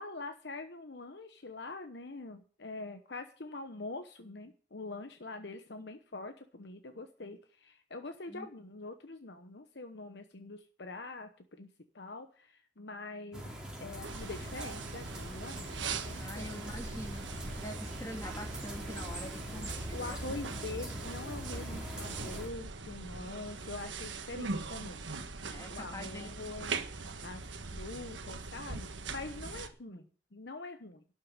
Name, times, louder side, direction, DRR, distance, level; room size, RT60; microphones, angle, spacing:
voice 1, 0.0-11.3 11.6-11.7 11.9-13.4 13.8-16.5 19.5-25.0 25.7-26.7 27.0-31.0, left 3 dB, 65° left, 7 dB, 1.0 m, -44 dB
sound 1, 13.3-22.5, equal, 5° right, 3.7 m, -43 dB
sound 2, 14.0-29.7, right 4 dB, 90° right, 1.4 m, -41 dB
voice 2, 16.1-17.2 17.6-20.2 20.6-20.8 25.5-26.3 29.9-30.1, equal, 20° left, 3 dB, 2.4 m, -45 dB
12.5 x 6.5 x 9.6 m, 0.41 s
head